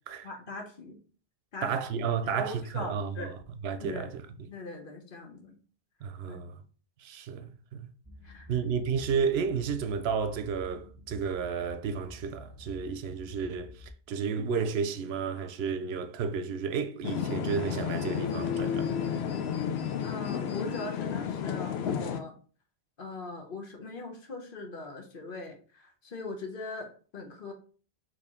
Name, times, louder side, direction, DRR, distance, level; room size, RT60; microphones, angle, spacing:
voice 1, 0.2-1.0 1.5-2.0 2.3-3.4 3.8-4.1 4.5-5.6 6.2-6.4 8.2-8.6 20.0-22.3 23.0-27.5, left 3 dB, 60° left, 1.1 m, -41 dB
voice 2, 1.6-3.4 3.6-4.2 6.0-6.6 7.0-7.9 8.5-18.9, right 6 dB, 75° right, 0.8 m, -32 dB
sound 1, 8.0-13.9, left 2 dB, 15° left, 1.5 m, -49 dB
sound 2, 17.0-22.2, left 8 dB, 75° left, 0.8 m, -32 dB
4.3 x 3.0 x 3.6 m
omnidirectional pair, 1.1 m